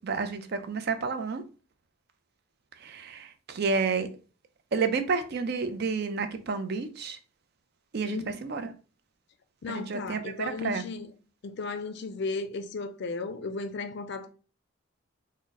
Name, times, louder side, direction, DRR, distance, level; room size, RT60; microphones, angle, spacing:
voice 1, 0.0-1.4 2.8-4.1 4.7-7.2 7.9-8.6 9.7-10.9, right 4 dB, 50° right, 0.4 m, -30 dB
voice 2, 9.6-11.1 11.4-14.3, left 3 dB, 55° left, 0.4 m, -35 dB
3.6 x 2.1 x 3.9 m
head